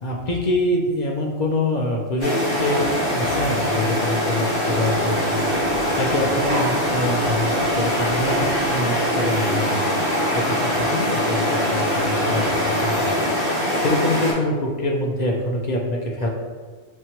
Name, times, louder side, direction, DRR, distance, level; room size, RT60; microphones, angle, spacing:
voice 1, 0.0-5.5 6.0-9.8 10.3-13.1 13.8-16.3, left 1 dB, 50° left, -1 dB, 0.5 m, -25 dB
sound 1, 2.2-14.3, equal, 25° left, 1.4 m, -22 dB
Sliding door, 4.6-9.3, right 2 dB, 65° right, 0.7 m, -37 dB
6.2 x 2.2 x 2.8 m, 1.5 s
omnidirectional pair, 1.3 m